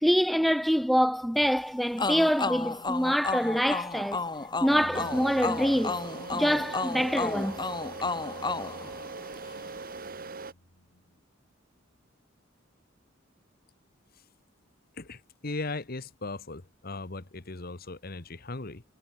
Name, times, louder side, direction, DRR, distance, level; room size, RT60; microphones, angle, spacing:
voice 1, 0.0-4.2 4.6-6.0 6.3-7.6, equal, ahead, 0.7 m, -25 dB
sound 1, 2.0-9.6, left 3 dB, 20° left, 2.4 m, -33 dB
sound 2, 4.7-11.2, left 1 dB, 75° left, 5.0 m, -52 dB
sound 3, 4.9-10.5, right 3 dB, 45° right, 1.2 m, -41 dB
voice 2, 14.9-18.8, left 3 dB, 50° left, 1.4 m, -38 dB
head